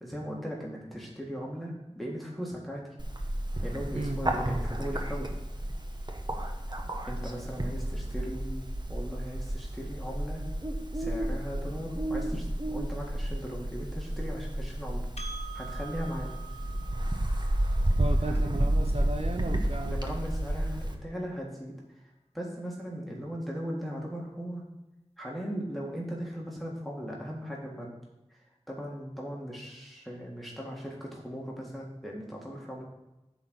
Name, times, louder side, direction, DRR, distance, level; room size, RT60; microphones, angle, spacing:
voice 1, 0.0-2.9 3.6-5.3 7.1-10.4 10.9-15.1 15.5-16.3 18.3-18.4 19.8-21.7 22.3-24.6 25.2-27.9 28.3-32.8, equal, ahead, -3 dB, 1.9 m, -38 dB
Bird, 3.0-20.9, right 1 dB, 40° right, 1.0 m, -31 dB
Percussion, 15.2-20.0, right 5 dB, 70° left, 1.2 m, -47 dB
voice 2, 18.0-19.9, right 2 dB, 65° right, 4 dB, 0.6 m, -34 dB
9.9 x 4.1 x 6.4 m, 1.0 s
wide cardioid pair, 40°, 11 cm